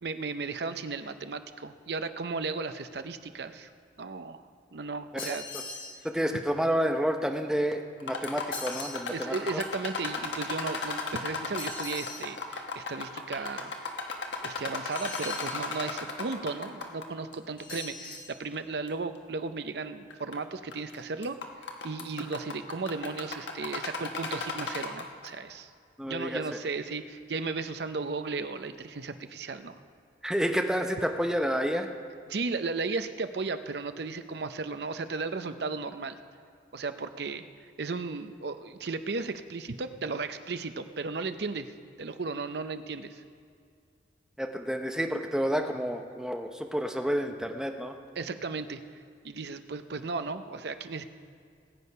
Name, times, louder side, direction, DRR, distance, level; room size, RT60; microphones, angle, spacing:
voice 1, 0.0-3.7 4.0-4.4 4.7-5.4 9.1-13.7 14.4-21.4 21.8-25.7 26.1-29.8 32.3-36.2 36.7-37.5 37.8-41.7 42.0-43.2 48.2-51.0, right 4 dB, 65° right, 10 dB, 0.6 m, -35 dB
sound 1, 5.2-6.0 8.5-9.0 11.6-12.3 14.9-15.5 17.6-18.3, left 3 dB, 50° left, 1.9 m, -40 dB
voice 2, 6.0-9.6 26.0-26.6 30.2-31.9 44.4-48.0, equal, 5° right, 4 dB, 0.7 m, -30 dB
sound 2, 8.0-17.0 17.3-17.4 18.1-18.2 18.9-19.0 20.1-20.4 20.7-20.9 21.2-25.3, left 4 dB, 75° left, 1.3 m, -35 dB
19.5 x 8.5 x 5.5 m, 2.2 s
head